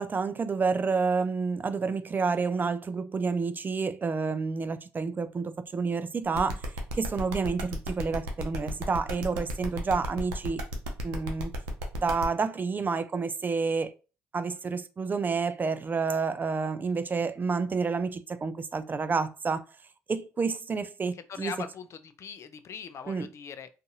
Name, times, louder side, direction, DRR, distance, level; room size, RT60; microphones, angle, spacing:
voice 1, 0.0-6.6 6.9-10.6 11.0-11.5 12.0-13.9 14.3-19.6 20.1-21.5 23.1-23.3, right 4 dB, 30° right, 0.3 m, -29 dB
sound 1, 6.3-12.2, equal, 85° right, 0.6 m, -35 dB
voice 2, 21.1-23.7, left 7 dB, 50° left, 0.4 m, -41 dB
2.6 x 2.5 x 2.6 m
hypercardioid pair, 60°, 6 cm